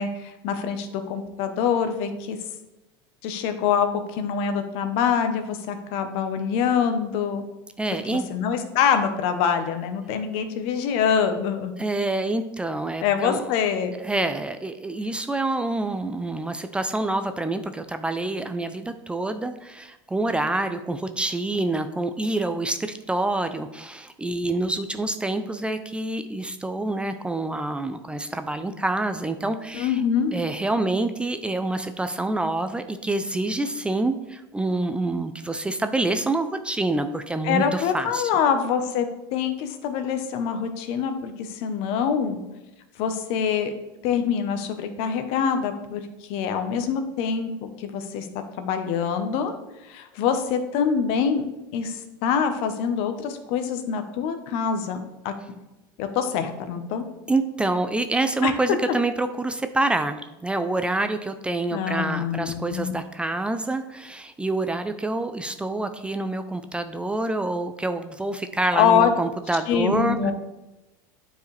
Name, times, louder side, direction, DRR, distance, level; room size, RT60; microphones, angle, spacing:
voice 1, 0.0-2.4 3.2-7.4 8.1-11.7 13.0-13.9 29.7-30.3 37.4-42.4 43.0-43.7 44.0-46.0 46.3-47.5 47.8-48.3 48.6-49.5 49.9-51.5 51.7-55.0 55.2-55.3 56.0-57.0 58.4-58.5 61.7-62.9 68.7-69.1 69.7-70.3, left 7 dB, 60° left, 8 dB, 0.9 m, -25 dB
voice 2, 7.8-8.2 11.8-13.5 14.0-30.0 30.3-38.3 57.3-70.3, right 2 dB, 10° right, 8 dB, 0.4 m, -27 dB
9.1 x 4.8 x 3.3 m, 1.0 s
supercardioid pair, 110°, 11 cm